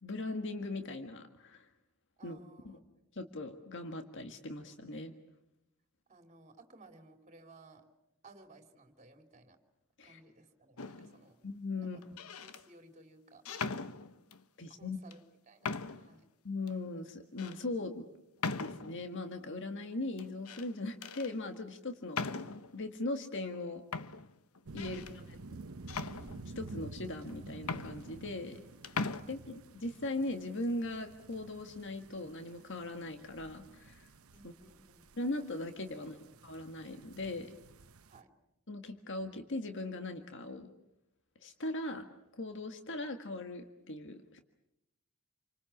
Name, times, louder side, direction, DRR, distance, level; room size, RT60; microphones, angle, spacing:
voice 1, 0.0-1.7 2.2-2.4 2.6-2.8 3.1-5.1 10.0-10.2 11.4-12.0 14.6-15.0 16.4-18.1 18.6-22.4 22.7-23.8 24.7-25.2 26.4-28.6 29.3-34.1 34.4-34.5 35.2-36.2 36.4-37.5 38.7-40.7 41.4-42.0 42.3-44.4, left 2 dB, 55° left, 6 dB, 1.7 m, -39 dB
voice 2, 2.2-2.8 6.1-7.8 8.2-9.6 10.0-11.4 11.8-12.0 12.4-13.4 14.6-15.2 15.5-16.3 24.8-25.5 29.1-29.4 34.3-35.1 35.9-36.6 38.1-38.3, right 2 dB, 35° right, 5 dB, 3.3 m, -59 dB
sound 1, 10.8-11.2 12.0-12.6 13.5-14.4 15.1-15.2 15.6-16.2 16.7-16.8 17.4-17.6 18.4-19.1 20.2-20.7 21.0-21.3 22.1-22.8 23.5-23.6 23.9-25.2 25.9-26.7 27.3-27.4 27.6-28.6 28.8-29.2, left 4 dB, 75° left, 1.0 m, -39 dB
sound 2, 24.7-38.2, right 2 dB, 70° right, 1.0 m, -51 dB
28.5 x 25.0 x 7.2 m, 0.85 s
head